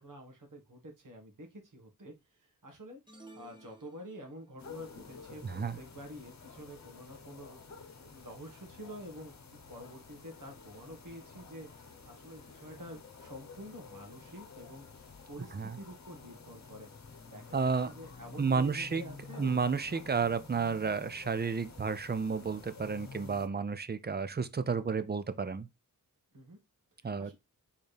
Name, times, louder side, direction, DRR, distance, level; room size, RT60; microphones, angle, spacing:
voice 1, 0.0-3.0 3.3-7.6 8.0-11.7 12.0-19.5 26.3-26.6 27.0-27.3, equal, 65° right, 1.7 m, -49 dB
sound 1, 3.1-4.6, right 2 dB, 15° right, 1.1 m, -55 dB
sound 2, 4.6-23.5, left 5 dB, 50° left, 1.0 m, -51 dB
voice 2, 5.4-5.8 15.5-15.8 17.5-17.9 18.4-19.0 19.4-25.7 27.0-27.3, right 5 dB, 30° right, 0.5 m, -31 dB
4.3 x 3.7 x 3.4 m
wide cardioid pair, 85°, 35 cm